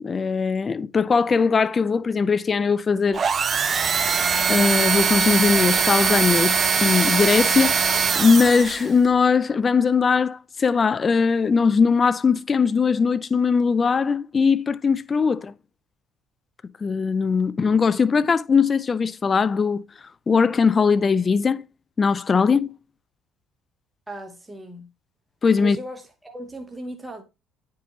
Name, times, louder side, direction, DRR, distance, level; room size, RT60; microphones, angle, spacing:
voice 1, 0.0-3.2 4.5-6.5 6.8-7.8 8.2-15.5 16.8-19.8 20.3-21.6 22.0-22.7 25.4-25.8, left 5 dB, 35° left, 0.5 m, -20 dB
sound 1, 3.1-8.9, right 6 dB, 45° right, 0.5 m, -21 dB
voice 2, 24.1-24.9 25.6-27.2, right 1 dB, 15° right, 1.2 m, -37 dB
9.4 x 4.7 x 2.9 m
hypercardioid pair, 65°, 0 cm